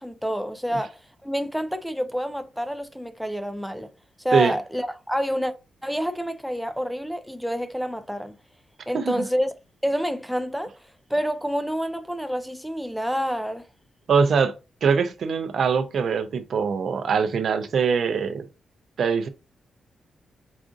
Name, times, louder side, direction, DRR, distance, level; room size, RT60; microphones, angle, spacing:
voice 1, 0.0-3.9 4.2-5.5 5.8-8.4 8.9-9.5 9.8-10.7 11.1-13.7, equal, ahead, 0.4 m, -28 dB
voice 2, 14.1-14.5 14.8-18.4 19.0-19.3, right 6 dB, 60° right, 0.5 m, -22 dB
4.9 x 2.4 x 2.5 m
wide cardioid pair, 125°, 0 cm